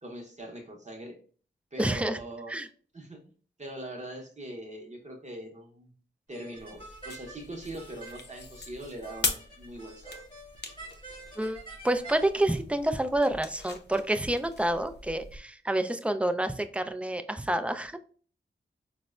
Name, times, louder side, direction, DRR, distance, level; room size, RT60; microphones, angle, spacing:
voice 1, 0.0-1.2 1.7-2.6 2.9-3.3 3.6-5.9 6.3-10.3, right 1 dB, 35° right, 1 dB, 0.7 m, -42 dB
voice 2, 1.8-2.2 2.5-2.7 11.4-18.0, right 1 dB, 5° right, 9 dB, 0.3 m, -28 dB
sound 1, 6.3-12.3, right 2 dB, 25° left, 1.1 m, -48 dB
sound 2, 6.6-15.4, left 4 dB, 55° left, 0.6 m, -40 dB
4.0 x 2.1 x 2.3 m, 0.43 s
cardioid pair, 45°, 20 cm